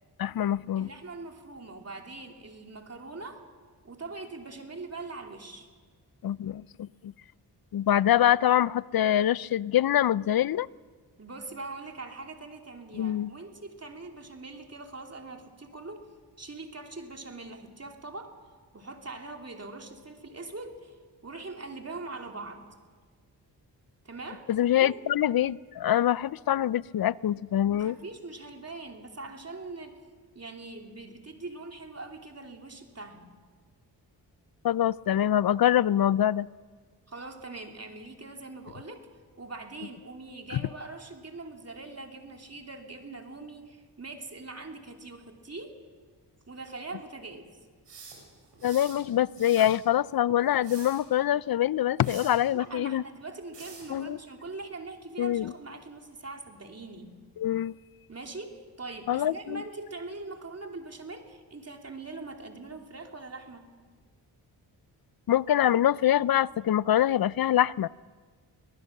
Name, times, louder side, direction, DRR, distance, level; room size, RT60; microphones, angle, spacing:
voice 1, 0.2-0.9 6.2-7.1 7.7-10.7 12.9-13.3 24.5-28.0 34.6-36.5 40.5-40.6 48.6-53.0 53.9-54.2 55.2-55.5 57.4-57.7 59.1-59.6 65.3-67.9, left 11 dB, 55° left, 21 dB, 0.5 m, -25 dB
voice 2, 0.8-3.4 3.8-5.7 11.2-16.1 16.4-18.3 18.7-20.9 21.2-22.7 24.0-25.0 27.7-30.0 30.3-33.3 37.1-39.1 39.4-45.8 46.5-47.5 52.5-57.2 58.1-63.7, right 3 dB, 35° right, 3 dB, 3.1 m, -42 dB
sound 1, 47.9-49.0 49.4-49.8 50.5-51.0 52.0-52.4 53.5-53.9, right 5 dB, 85° right, 6.6 m, -47 dB
23.0 x 19.0 x 6.7 m, 1.5 s
cardioid pair, 55°, 42 cm